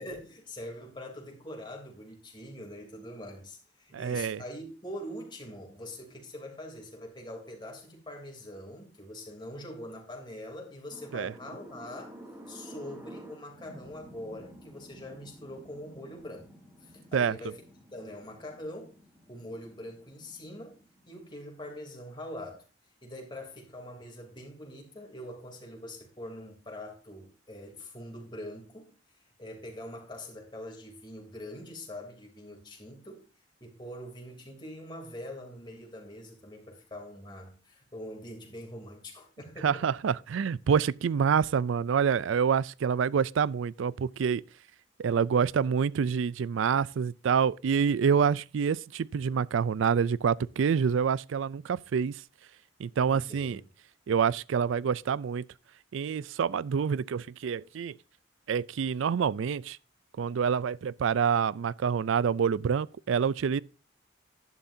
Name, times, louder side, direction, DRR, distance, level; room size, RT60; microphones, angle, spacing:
voice 1, 0.0-12.1 12.5-16.5 16.8-17.6 17.9-18.9 19.3-20.8 21.1-22.6 23.0-28.9 29.4-33.2 33.6-39.9 53.1-53.6, left 1 dB, 25° left, 3.1 m, -43 dB
voice 2, 3.9-4.4 11.1-11.3 17.1-17.4 39.6-44.4 45.0-52.2 52.8-53.6 54.1-55.4 55.9-58.0 58.5-59.8 60.2-63.6, right 6 dB, 80° right, 0.4 m, -27 dB
sound 1, 10.9-21.3, equal, 10° right, 2.3 m, -51 dB
11.5 x 11.0 x 2.7 m
head